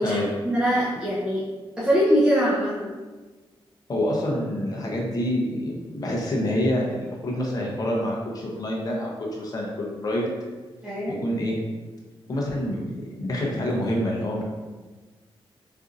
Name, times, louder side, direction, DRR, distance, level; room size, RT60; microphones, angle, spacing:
voice 1, 0.0-1.4 1.8-2.9 10.8-11.2, equal, 10° right, -8 dB, 0.6 m, -23 dB
voice 2, 3.9-10.3 11.1-11.6 12.3-12.9 13.2-14.4, left 1 dB, 40° left, -2 dB, 0.7 m, -27 dB
4.3 x 2.6 x 2.5 m, 1.3 s
wide cardioid pair, 165°, 10 cm